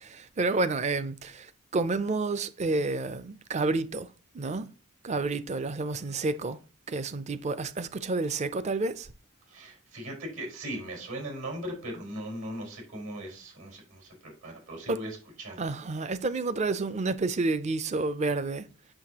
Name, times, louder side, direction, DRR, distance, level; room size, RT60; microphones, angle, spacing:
voice 1, 0.4-1.3 1.7-4.1 4.4-4.7 5.0-6.6 6.9-9.1 14.9-15.0 15.6-18.6, right 3 dB, 35° right, 0.4 m, -29 dB
voice 2, 5.9-6.3 9.5-15.7, right 1 dB, 80° right, 4.5 m, -39 dB
7.7 x 6.5 x 2.9 m
head